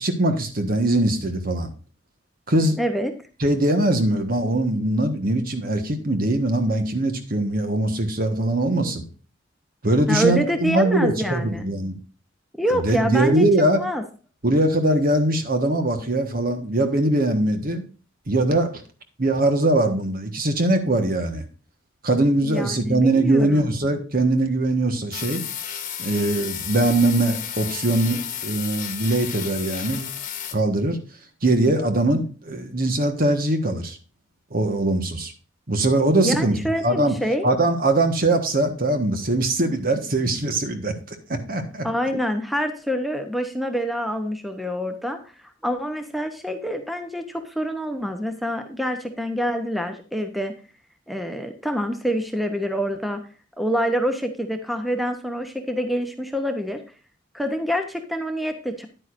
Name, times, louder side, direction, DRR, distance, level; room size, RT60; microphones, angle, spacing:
voice 1, 0.0-1.7 2.5-2.8 3.4-9.0 9.8-12.0 12.7-13.8 14.4-17.8 18.3-18.7 19.2-21.4 22.0-25.4 26.0-30.1 30.5-31.0 31.4-34.0 34.5-35.3 35.7-36.6 36.8-37.1 37.4-40.9 41.3-41.9, right 1 dB, 50° right, 7 dB, 1.4 m, -21 dB
voice 2, 2.8-3.1 10.1-11.7 12.6-13.4 13.8-14.0 22.4-23.7 36.2-37.5 41.8-45.2 45.6-50.6 51.1-53.2 53.6-56.8 57.3-58.9, equal, ahead, 6 dB, 0.8 m, -26 dB
sound 1, 25.1-30.5, left 9 dB, 40° left, 1.2 m, -32 dB
10.0 x 9.2 x 2.6 m, 0.37 s
head